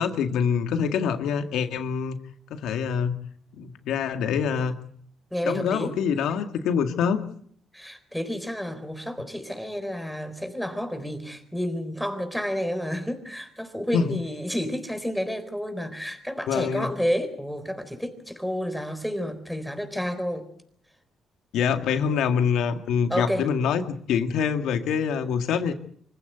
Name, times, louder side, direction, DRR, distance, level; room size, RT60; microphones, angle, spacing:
voice 1, 0.0-2.2 2.5-3.1 3.6-4.7 5.4-7.2 13.9-14.2 16.5-16.9 21.5-25.7, left 7 dB, 85° left, 7 dB, 2.0 m, -25 dB
voice 2, 5.3-5.9 7.7-20.5 23.1-23.5, equal, ahead, 7 dB, 4.1 m, -30 dB
25.5 x 15.5 x 8.1 m, 0.64 s
cardioid pair, 90°, 0 cm